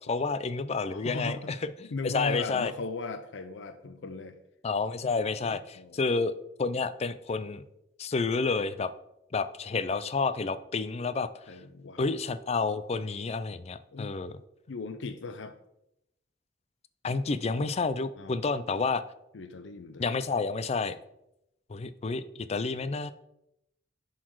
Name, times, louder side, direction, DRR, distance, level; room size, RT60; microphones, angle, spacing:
voice 1, 0.1-1.6 2.0-2.7 4.6-6.3 6.6-7.6 8.0-8.9 9.3-11.3 12.0-14.3 17.0-19.0 20.0-21.0 21.7-23.1, left 4 dB, 35° left, 14 dB, 0.4 m, -30 dB
voice 2, 0.8-1.5 1.8-4.4 5.0-6.1 11.5-12.0 13.9-14.2 14.7-15.6 18.2-18.4 19.3-20.1, left 3 dB, 85° left, 9 dB, 0.6 m, -38 dB
10.5 x 4.0 x 4.6 m, 0.83 s
head